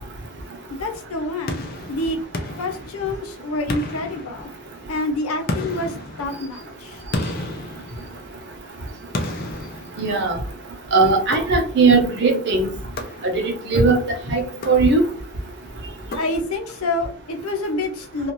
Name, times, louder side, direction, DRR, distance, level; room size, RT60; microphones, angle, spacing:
voice 1, 0.7-1.6 1.9-2.2 2.6-4.5 4.9-7.1 16.1-18.3, left 2 dB, 80° left, 0.7 m, -27 dB
sound 1, 1.5-3.3 3.7-4.9 5.5-8.5 9.1-10.6 11.3-12.0 13.0-13.7 14.5-15.3 16.1-16.8, left 2 dB, 45° left, 0.5 m, -32 dB
voice 2, 10.0-10.4 10.9-12.7 13.2-13.3 13.7-14.0 14.3-15.0, right 3 dB, 55° right, 0.8 m, -18 dB
2.6 x 2.4 x 3.0 m
head